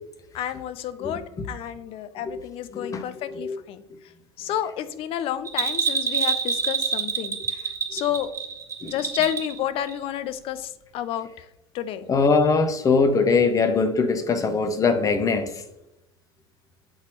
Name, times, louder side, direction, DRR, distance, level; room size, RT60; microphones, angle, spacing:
voice 1, 0.3-3.8 4.4-7.6 7.9-8.3 8.9-11.5 11.7-12.1, left 11 dB, 45° left, 13 dB, 0.5 m, -30 dB
voice 2, 1.0-1.4 2.2-2.4 2.7-3.6 8.8-8.9 12.1-15.6, left 4 dB, 25° left, 8 dB, 0.8 m, -22 dB
Bell, 5.5-9.6 9.9-10.0, right 5 dB, 20° right, 1.5 m, -26 dB
7.9 x 4.1 x 3.2 m, 0.88 s
figure-of-eight pair, 75°, 14 cm